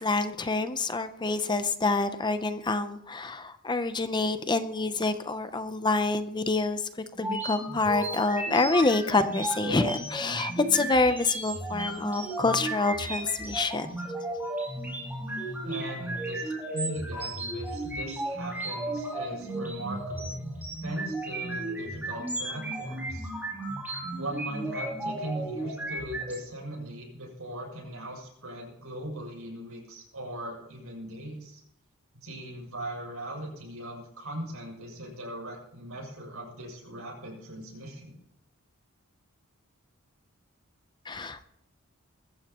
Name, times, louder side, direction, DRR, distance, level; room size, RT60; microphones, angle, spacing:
voice 1, 0.0-6.9 7.2-14.0 41.1-41.4, left 3 dB, 20° left, 10 dB, 0.7 m, -27 dB
sound 1, 7.1-26.4, right 1 dB, 10° right, 5.7 m, -34 dB
voice 2, 15.6-20.3 20.8-23.3 24.1-31.6 32.2-38.2, right 1 dB, 80° right, -1 dB, 7.2 m, -39 dB
21.5 x 15.0 x 3.0 m, 0.81 s
head